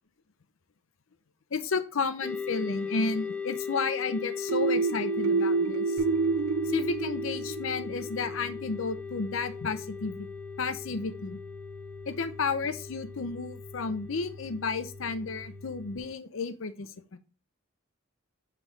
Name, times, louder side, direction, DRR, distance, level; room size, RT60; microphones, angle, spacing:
voice 1, 1.5-6.0 6.7-10.3 10.6-11.4 12.1-17.2, left 4 dB, 70° left, 11 dB, 0.6 m, -32 dB
sound 1, 2.2-16.1, left 6 dB, 5° left, 0.4 m, -39 dB
sound 2, 4.5-8.1, right 4 dB, 70° right, 0.3 m, -28 dB
sound 3, 6.0-16.0, left 1 dB, 40° right, 1.2 m, -47 dB
5.6 x 4.4 x 4.6 m, 0.33 s
head